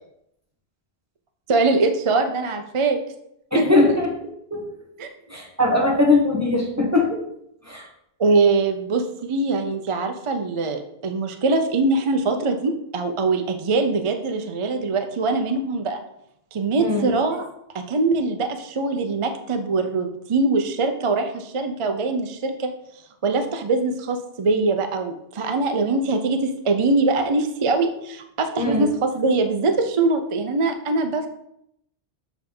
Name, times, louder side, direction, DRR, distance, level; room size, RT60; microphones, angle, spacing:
voice 1, 1.5-3.0 3.5-3.6 5.0-5.1 8.2-16.0 16.5-17.4 17.7-22.7 23.2-31.3, right 3 dB, 40° right, 6 dB, 0.5 m, -22 dB
voice 2, 3.5-4.1 4.5-4.7 5.3-7.2 7.6-7.9 16.8-17.1 28.6-28.9, left 2 dB, 15° right, -2 dB, 1.4 m, -20 dB
7.2 x 3.4 x 5.3 m, 0.77 s
omnidirectional pair, 1.2 m